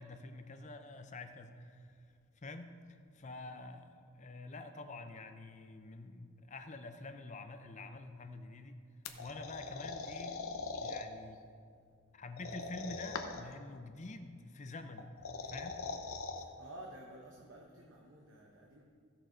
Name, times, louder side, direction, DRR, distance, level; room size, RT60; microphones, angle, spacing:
voice 1, 0.0-2.0 2.4-8.8 9.2-10.4 10.8-11.4 12.1-15.1 15.4-15.8, left 2 dB, 35° left, 8 dB, 0.6 m, -47 dB
sound 1, 9.1-11.1 12.4-13.5 15.0-16.4, left 4 dB, 75° left, 0.8 m, -41 dB
voice 2, 16.3-18.8, right 1 dB, 60° right, -1 dB, 0.9 m, -53 dB
16.0 x 6.7 x 3.9 m, 2.2 s
head